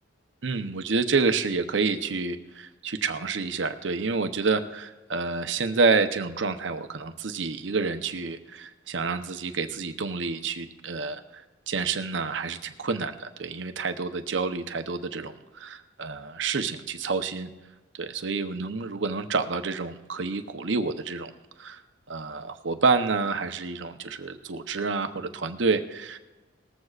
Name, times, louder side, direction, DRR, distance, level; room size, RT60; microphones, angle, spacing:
voice 1, 0.4-17.5 17.9-21.3 21.6-21.8 22.1-26.2, right 4 dB, 70° right, 8 dB, 0.7 m, -28 dB
19.0 x 14.5 x 2.4 m, 1.2 s
head